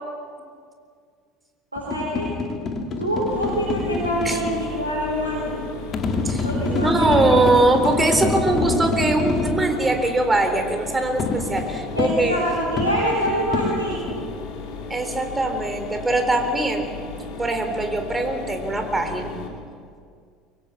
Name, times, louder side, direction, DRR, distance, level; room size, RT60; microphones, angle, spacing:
voice 1, 1.7-2.3 3.0-5.6 6.4-7.5 12.0-14.1, equal, 90° right, -5 dB, 4.4 m, -25 dB
sound 1, 1.8-4.6 5.9-9.7 11.2-14.2, left 4 dB, 40° left, 2.6 m, -26 dB
Mechanisms, 3.3-19.5, left 4 dB, 55° left, 4.2 m, -35 dB
voice 2, 6.2-12.4 14.9-16.9 17.3-19.4, right 2 dB, 15° right, 5 dB, 4.0 m, -22 dB
25.0 x 23.0 x 6.0 m, 2.1 s
figure-of-eight pair, 65°, 0 cm